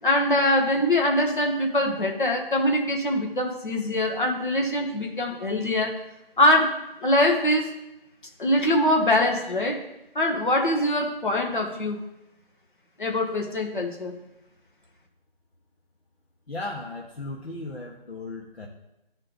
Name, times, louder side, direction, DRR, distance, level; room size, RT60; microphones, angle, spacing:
voice 1, 0.0-6.0 6.4-7.7 8.4-9.8 10.1-12.0 13.0-14.1, left 1 dB, 55° left, 1 dB, 1.5 m, -23 dB
voice 2, 16.5-18.7, left 2 dB, 90° left, -1 dB, 1.2 m, -36 dB
10.5 x 4.4 x 4.0 m, 0.92 s
figure-of-eight pair, 175°, 30 cm